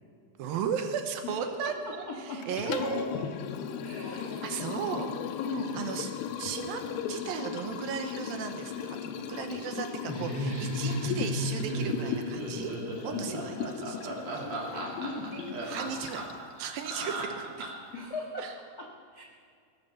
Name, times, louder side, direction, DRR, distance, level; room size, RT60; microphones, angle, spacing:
voice 1, 0.4-3.4 4.4-5.1 5.7-6.1 6.4-6.8 7.1-12.7 13.0-14.5 15.7-16.2 16.6-17.7 18.4-18.5, right 7 dB, 75° right, 6 dB, 2.6 m, -36 dB
voice 2, 1.2-1.7 2.1-2.4 3.8-4.6 5.4-5.7 13.1-13.4 14.7-15.8 17.9-18.4 19.1-19.2, left 3 dB, 65° left, -1 dB, 0.9 m, -39 dB
Liquid, 2.4-16.5, left 7 dB, 90° left, 2.7 m, -37 dB
Laughter, 10.1-17.9, right 1 dB, 45° right, 3.5 m, -34 dB
19.0 x 8.9 x 7.0 m, 2.2 s
omnidirectional pair, 4.5 m